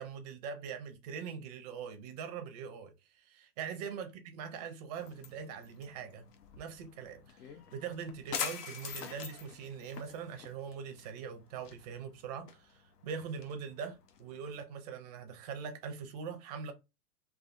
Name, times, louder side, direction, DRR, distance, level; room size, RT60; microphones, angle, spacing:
voice 1, 0.0-6.2 6.6-16.7, right 6 dB, 30° right, 0.4 m, -42 dB
sound 1, 4.9-14.6, left 7 dB, 85° left, 0.8 m, -45 dB
3.3 x 2.3 x 2.4 m
hypercardioid pair, 125°, 46 cm